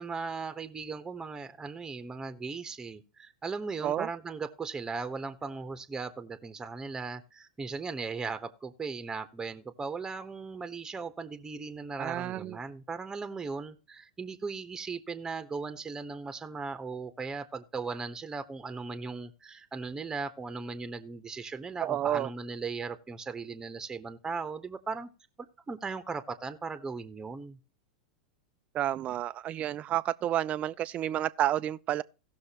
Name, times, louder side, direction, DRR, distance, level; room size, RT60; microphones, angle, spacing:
voice 1, 0.0-25.1 25.4-27.6, right 4 dB, 15° right, 1.1 m, -38 dB
voice 2, 12.0-12.6 21.8-22.3 28.7-32.0, right 12 dB, 35° right, 0.5 m, -30 dB
17.5 x 6.4 x 3.0 m
hypercardioid pair, 95°, 4 cm